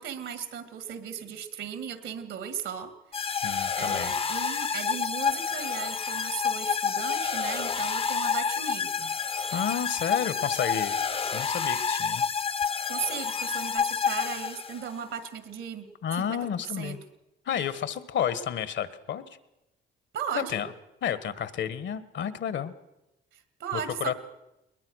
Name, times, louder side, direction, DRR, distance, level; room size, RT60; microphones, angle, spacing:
voice 1, 0.0-3.2 3.8-9.1 12.9-15.9 16.1-17.0 20.1-20.6 23.3-24.1, right 8 dB, 75° right, 11 dB, 2.1 m, -37 dB
sound 1, 3.1-14.9, left 6 dB, 30° left, 0.6 m, -29 dB
voice 2, 3.4-4.1 9.5-11.0 11.3-12.2 16.0-17.0 17.4-19.4 20.3-20.7 21.0-22.7 24.0-24.1, left 8 dB, 65° left, 15 dB, 1.3 m, -31 dB
21.5 x 20.5 x 6.3 m, 0.95 s
cardioid pair, 90°, 20 cm